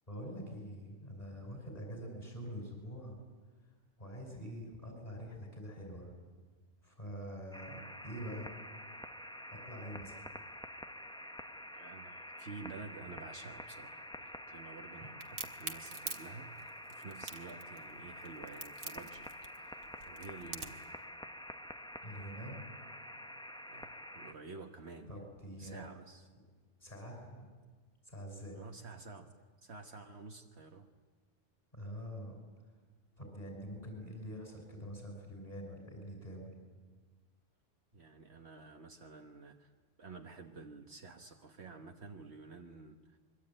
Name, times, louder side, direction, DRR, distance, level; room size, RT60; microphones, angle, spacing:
voice 1, 0.1-3.2 4.0-6.2 6.8-8.6 9.5-10.2 22.0-22.7 25.1-25.9 26.8-27.5 28.0-28.6 31.7-32.4 33.2-36.5, equal, 30° left, 1 dB, 6.3 m, -45 dB
sound 1, 7.5-24.3, equal, 5° left, 1.0 m, -48 dB
voice 2, 11.7-19.3 19.6-20.8 23.7-25.2 25.6-26.3 28.5-30.9 37.9-39.7 40.0-43.2, right 3 dB, 60° right, 4 dB, 1.5 m, -50 dB
Crack, 15.2-20.9, right 4 dB, 80° right, 2.0 m, -44 dB
25.5 x 23.0 x 9.0 m, 1.4 s
omnidirectional pair, 1.3 m